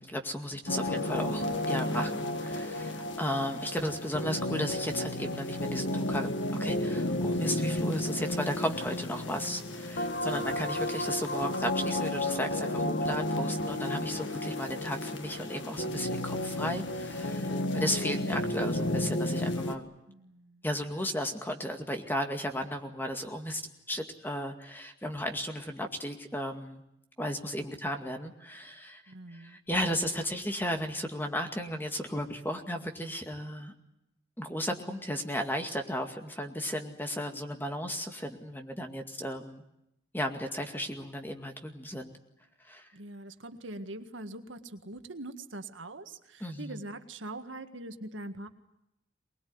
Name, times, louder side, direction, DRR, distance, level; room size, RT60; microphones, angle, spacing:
voice 1, 0.0-6.3 6.6-19.9 20.6-23.6 23.9-26.8 27.2-33.7 34.4-39.6 40.1-42.1 42.6-42.9 46.4-46.8, equal, 10° left, 5 dB, 2.1 m, -35 dB
sound 1, 0.7-19.8, left 1 dB, 75° left, 1.9 m, -32 dB
voice 2, 20.1-20.6 29.1-29.6 42.9-48.5, right 2 dB, 85° right, 7 dB, 1.8 m, -43 dB
24.0 x 20.5 x 9.6 m, 0.84 s
head